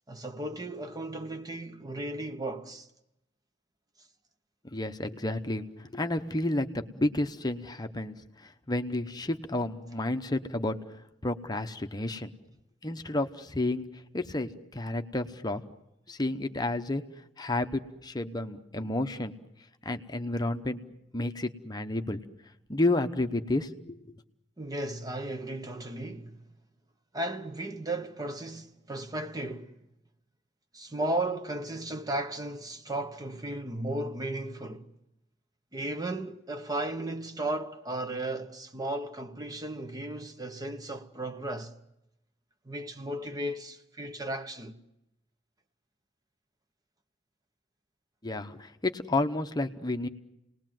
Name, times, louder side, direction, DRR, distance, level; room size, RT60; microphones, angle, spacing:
voice 1, 0.1-2.9 24.6-26.4 27.1-29.8 30.7-34.9 35.7-41.8 42.7-44.8, right 1 dB, 20° right, 0.9 m, -35 dB
voice 2, 4.6-10.8 11.2-12.3 12.8-13.8 14.1-15.6 16.1-17.0 17.4-19.3 19.8-20.8 21.1-22.2 22.7-24.2 48.2-50.1, left 2 dB, 20° left, 0.9 m, -31 dB
29.5 x 19.5 x 7.7 m
head